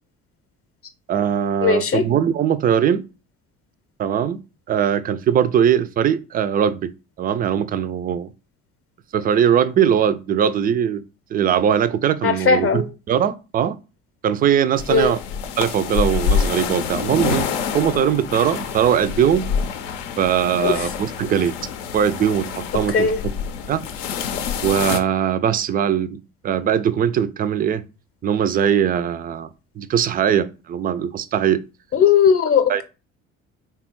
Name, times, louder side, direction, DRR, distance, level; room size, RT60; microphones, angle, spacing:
voice 1, 1.1-3.0 4.0-4.4 4.7-6.9 7.2-8.3 9.1-11.0 11.3-12.8 13.1-13.8 14.2-15.2 15.6-17.5 17.7-19.5 20.2-21.6 21.9-23.1 23.7-23.8 24.6-27.8 28.2-29.5 29.8-31.6 32.7-32.8, right 9 dB, 25° right, 0.3 m, -20 dB
voice 2, 1.6-2.0 12.2-12.9 14.9-15.1 20.6-20.9 22.9-23.2 31.9-32.8, left 6 dB, 35° left, 0.8 m, -18 dB
sound 1, 14.8-25.0, left 6 dB, 70° left, 0.6 m, -27 dB
3.4 x 2.3 x 4.4 m
figure-of-eight pair, 55°, 38 cm